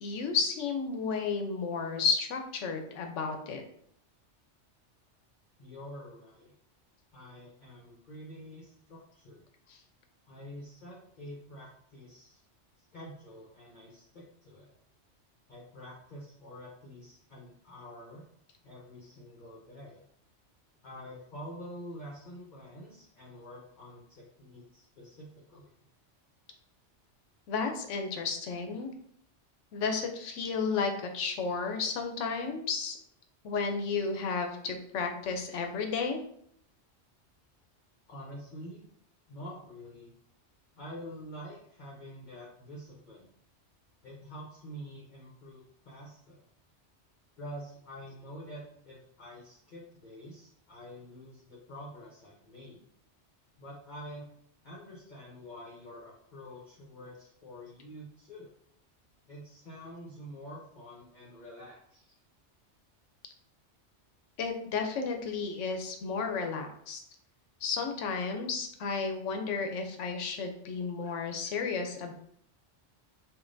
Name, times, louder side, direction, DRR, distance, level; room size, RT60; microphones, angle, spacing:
voice 1, 0.0-3.6 9.7-9.8 27.5-28.9 29.7-33.0 33.4-36.2 64.4-67.0 67.6-72.1, left 5 dB, 90° left, 5 dB, 1.0 m, -32 dB
voice 2, 5.6-6.5 7.1-9.4 10.3-12.4 12.9-14.7 15.5-18.2 18.6-20.0 20.8-25.7 38.1-38.9 39.3-40.1 40.8-43.3 44.0-46.5 47.4-52.8 53.6-54.3 54.6-58.5 59.3-62.2, equal, 45° left, -5 dB, 0.9 m, -47 dB
5.0 x 2.5 x 2.6 m, 0.66 s
omnidirectional pair, 1.2 m